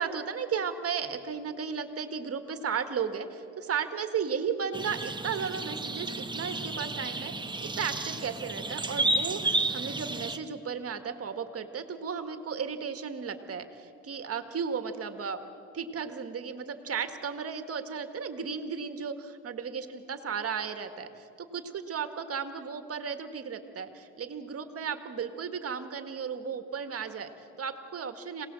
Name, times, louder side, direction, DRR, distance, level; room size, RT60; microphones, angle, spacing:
voice 1, 0.0-15.4 15.7-19.1 19.4-28.5, right 6 dB, 50° right, 8 dB, 1.9 m, -35 dB
sound 1, 4.7-10.4, right 2 dB, 15° right, 1.2 m, -32 dB
26.0 x 18.5 x 7.7 m, 2.7 s
cardioid pair, 90°, 30 cm